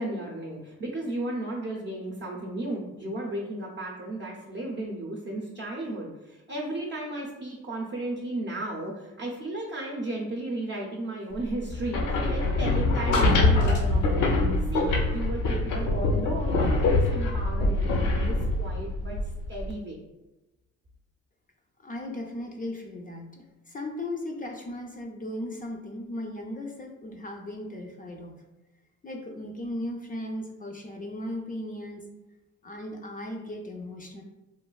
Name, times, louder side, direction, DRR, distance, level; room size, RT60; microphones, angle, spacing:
voice 1, 0.0-14.3 14.7-19.2 19.5-20.0, right 1 dB, 40° right, -3 dB, 0.6 m, -34 dB
sound 1, 11.7-19.7, left 2 dB, 85° left, 0.6 m, -24 dB
voice 2, 21.8-28.3 29.0-32.0 32.6-34.2, left 1 dB, 30° left, 2 dB, 0.4 m, -37 dB
3.1 x 2.4 x 2.2 m, 1.0 s
cardioid pair, 90°, 30 cm